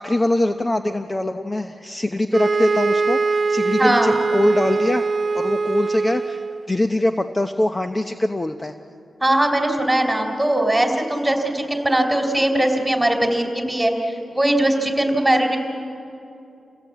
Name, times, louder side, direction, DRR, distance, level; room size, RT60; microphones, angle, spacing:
voice 1, 0.0-5.1 5.3-6.4 6.7-8.7, left 1 dB, 25° left, 7 dB, 0.9 m, -22 dB
sound 1, 2.3-6.7, right 4 dB, 55° right, 0.8 m, -22 dB
voice 2, 3.8-4.2 9.2-15.6, right 1 dB, 10° right, 4 dB, 4.2 m, -20 dB
28.5 x 17.0 x 8.5 m, 2.7 s
cardioid pair, 60°, 0 cm